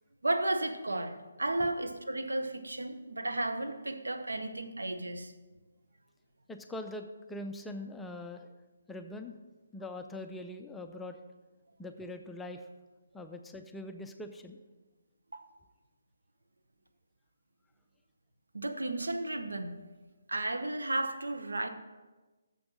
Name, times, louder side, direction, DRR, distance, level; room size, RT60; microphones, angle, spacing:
voice 1, 0.2-5.3 15.3-15.4 18.5-19.7 20.3-21.7, right 2 dB, 80° right, 7 dB, 0.8 m, -33 dB
voice 2, 6.5-8.5 8.9-9.3 9.7-11.2 11.8-12.7 13.1-14.6, left 1 dB, 5° left, 5 dB, 0.4 m, -42 dB
7.1 x 6.0 x 6.1 m, 1.2 s
figure-of-eight pair, 145°, 0 cm